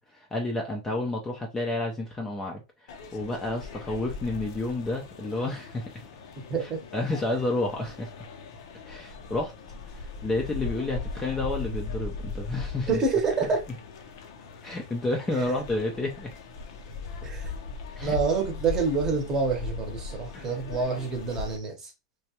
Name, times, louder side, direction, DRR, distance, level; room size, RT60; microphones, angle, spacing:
voice 1, 0.0-5.9 6.6-8.1 8.9-9.5 9.9-13.0 14.6-16.3 18.0-18.2 20.3-20.5, left 2 dB, 10° left, 0.5 m, -30 dB
sound 1, 2.9-21.6, left 4 dB, 60° left, 0.7 m, -39 dB
voice 2, 6.5-6.8 12.9-13.6 17.2-17.5 18.0-21.9, right 4 dB, 20° right, 0.9 m, -27 dB
3.2 x 2.3 x 2.8 m
supercardioid pair, 140°, 3 cm